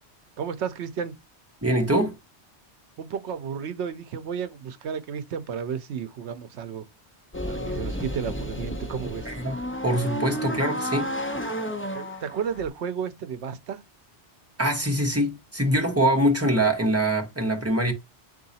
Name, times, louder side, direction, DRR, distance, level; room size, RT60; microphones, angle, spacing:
voice 1, 0.4-1.1 3.0-6.9 7.4-9.3 11.9-13.8, right 7 dB, 75° right, 0.9 m, -32 dB
voice 2, 1.6-2.2 9.3-9.5 9.8-11.1 14.6-17.9, right 1 dB, 15° right, 0.9 m, -23 dB
sound 1, 7.3-12.7, equal, 15° left, 0.6 m, -32 dB
3.8 x 2.7 x 4.1 m
omnidirectional pair, 1.2 m